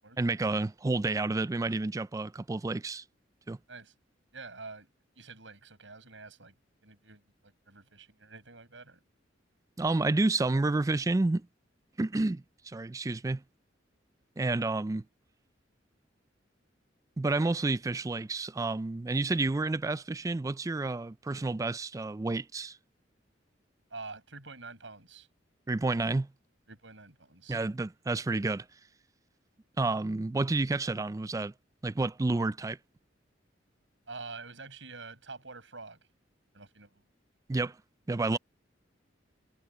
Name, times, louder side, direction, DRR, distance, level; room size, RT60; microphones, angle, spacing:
voice 1, 0.2-3.0 3.5-3.6 9.8-11.5 12.0-13.4 14.4-15.0 17.2-22.8 25.7-26.3 27.5-28.7 29.8-31.5 31.8-32.8 37.5-37.8 38.1-38.4, right 2 dB, 20° right, 0.3 m, -30 dB
voice 2, 4.3-4.9 5.2-6.5 6.8-9.0 23.9-25.3 26.7-27.6 34.1-36.0 36.5-37.0, right 3 dB, 75° right, 7.7 m, -47 dB
head